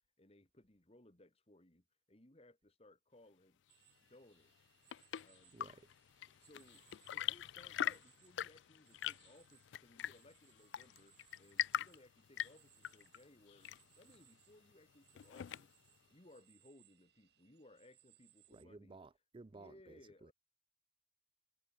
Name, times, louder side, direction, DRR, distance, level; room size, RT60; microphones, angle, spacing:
voice 1, 0.2-3.6 4.0-4.7 5.2-5.6 6.4-6.8 7.1-15.8 16.1-19.0 19.3-20.3, left 1 dB, 35° left, 2.2 m, -64 dB
sound 1, 3.7-18.6, right 13 dB, 60° right, 5.1 m, -71 dB
Chirp tweet / Engine / Tap, 4.5-16.0, left 11 dB, 80° left, 0.3 m, -44 dB
voice 2, 5.5-5.9 18.5-20.3, right 3 dB, 30° right, 0.4 m, -56 dB
head